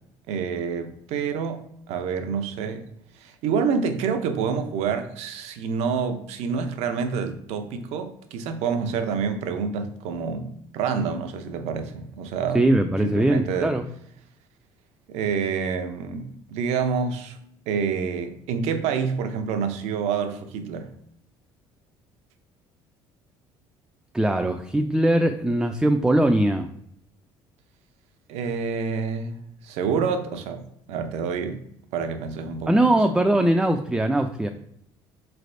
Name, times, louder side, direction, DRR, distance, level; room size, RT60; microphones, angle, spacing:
voice 1, 0.3-2.9 3.1-12.6 13.0-13.7 15.1-17.4 17.7-20.9 28.3-29.4 29.6-31.6 31.9-32.9, right 6 dB, 75° right, 0.6 m, -28 dB
voice 2, 12.5-13.8 24.1-26.7 32.7-34.5, right 1 dB, 5° right, 0.3 m, -21 dB
4.0 x 3.3 x 2.5 m
supercardioid pair, 75°, 11 cm